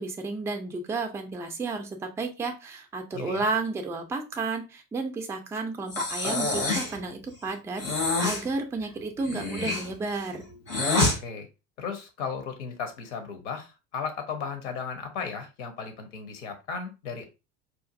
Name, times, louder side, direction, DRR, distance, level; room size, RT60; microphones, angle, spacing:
voice 1, 0.0-10.4, right 3 dB, 5° right, 4 dB, 0.4 m, -32 dB
voice 2, 3.1-3.4 11.2-11.5 11.8-17.2, left 5 dB, 65° left, 6 dB, 0.9 m, -35 dB
Breathing, 5.9-7.0 7.8-8.4 9.2-11.2, left 2 dB, 85° left, 1.3 m, -27 dB
4.1 x 2.5 x 2.4 m, 0.27 s
figure-of-eight pair, 65°, 40 cm